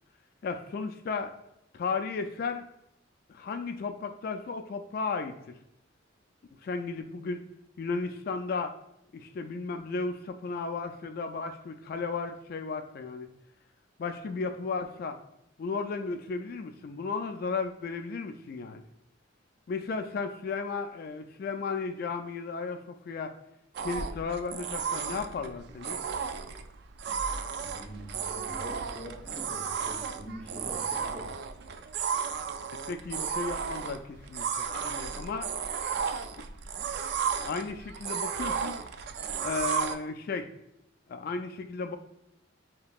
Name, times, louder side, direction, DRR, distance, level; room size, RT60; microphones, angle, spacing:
voice 1, 0.4-1.3 1.7-2.7 3.3-5.4 6.6-7.4 7.8-8.7 9.1-13.3 14.0-15.2 15.6-18.8 19.7-23.3 23.8-26.0 32.9-35.5 37.4-38.8 39.4-40.5 41.1-42.0, left 4 dB, 50° left, 7 dB, 0.3 m, -34 dB
sound 1, 23.7-39.9, right 6 dB, 60° right, 0.3 m, -34 dB
voice 2, 27.6-31.3, equal, 5° left, -3 dB, 0.9 m, -44 dB
5.1 x 2.9 x 2.3 m, 0.81 s
head